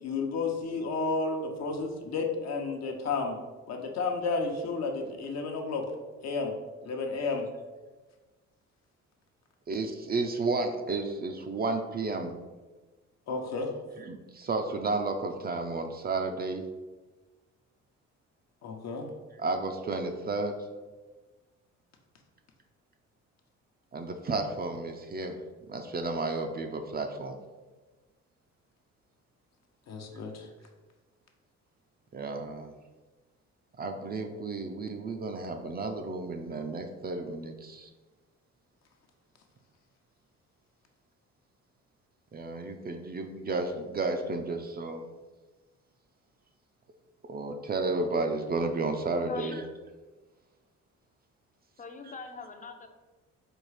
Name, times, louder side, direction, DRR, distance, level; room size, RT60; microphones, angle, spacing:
voice 1, 0.0-3.4 3.7-5.8 6.2-6.5 6.8-7.5 13.3-13.7 18.6-19.1 29.9-30.5, left 4 dB, 60° left, 2 dB, 0.8 m, -32 dB
voice 2, 9.7-12.4 14.0-16.7 19.4-20.5 23.9-25.4 25.7-27.4 32.1-32.7 33.8-37.9 42.3-45.1 47.2-49.6 52.0-52.1, right 3 dB, 30° right, 5 dB, 0.4 m, -32 dB
voice 3, 49.3-49.6 51.8-52.9, left 4 dB, 25° left, 6 dB, 0.5 m, -41 dB
4.3 x 2.4 x 4.7 m, 1.3 s
cardioid pair, 90°, 30 cm